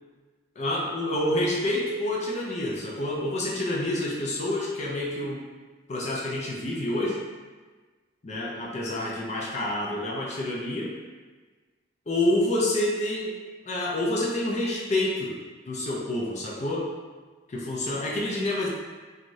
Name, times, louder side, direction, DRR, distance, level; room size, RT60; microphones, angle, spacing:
voice 1, 0.6-5.4 5.9-7.2 8.2-11.0 12.1-13.3 13.6-15.4 15.7-16.9 17.5-18.7, left 1 dB, 35° left, -3 dB, 0.4 m, -28 dB
3.0 x 2.4 x 2.6 m, 1.4 s
head